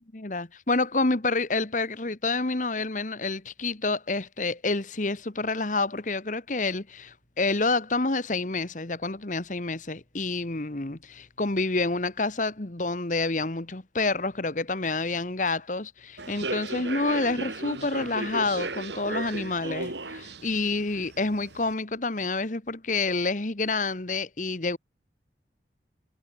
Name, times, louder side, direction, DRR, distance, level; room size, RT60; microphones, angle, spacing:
voice 1, 0.1-24.8, left 3 dB, 45° left, 1.4 m, -28 dB
Human voice / Subway metro underground, 16.2-21.7, right 2 dB, 75° right, 6.4 m, -35 dB
head